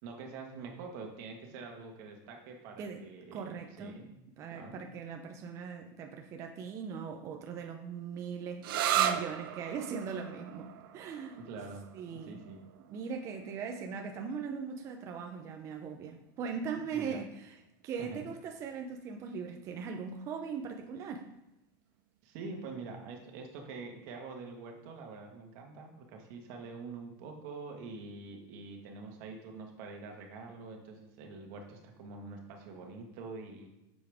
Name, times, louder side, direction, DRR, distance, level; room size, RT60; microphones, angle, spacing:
voice 1, 0.0-4.1 4.5-4.8 11.4-11.9 12.1-12.7 16.9-17.2 18.0-18.2 22.2-33.7, right 4 dB, 50° right, 2 dB, 1.6 m, -45 dB
voice 2, 3.3-4.0 4.4-8.7 9.0-11.4 11.9-12.4 12.9-17.6 17.8-21.3, right 6 dB, 25° right, 4 dB, 0.6 m, -40 dB
sound 1, 8.6-16.0, right 10 dB, 85° right, 0.7 m, -37 dB
8.6 x 7.1 x 3.6 m, 0.93 s
supercardioid pair, 175°, 11 cm